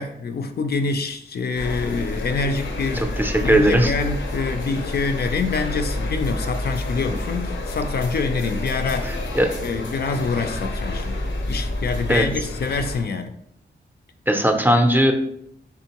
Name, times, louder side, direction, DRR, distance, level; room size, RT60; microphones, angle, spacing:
voice 1, 0.0-3.1 3.4-9.2 9.6-11.2 11.5-13.3, left 4 dB, 55° left, 7 dB, 0.4 m, -26 dB
sound 1, 1.5-13.0, left 1 dB, 90° left, 0.7 m, -29 dB
voice 2, 2.9-3.9 9.0-9.5 12.1-12.2 14.3-15.1, right 1 dB, 10° right, 4 dB, 0.4 m, -18 dB
3.7 x 3.5 x 2.9 m, 0.72 s
wide cardioid pair, 115°, 19 cm